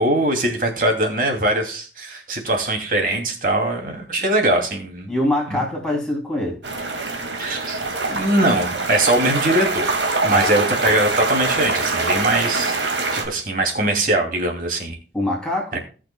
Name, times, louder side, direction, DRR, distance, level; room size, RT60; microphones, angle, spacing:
voice 1, 0.0-5.1 5.5-5.6 7.4-7.8 8.1-10.0 10.2-12.8 13.1-15.0 15.7-15.8, right 1 dB, 50° right, 2.6 m, -21 dB
voice 2, 5.1-6.6 8.1-8.2 10.3-10.5 10.8-11.0 15.1-15.8, left 1 dB, 5° left, 2.9 m, -24 dB
sound 1, 6.6-13.2, right 3 dB, 80° right, 2.1 m, -24 dB
18.5 x 6.3 x 2.3 m
head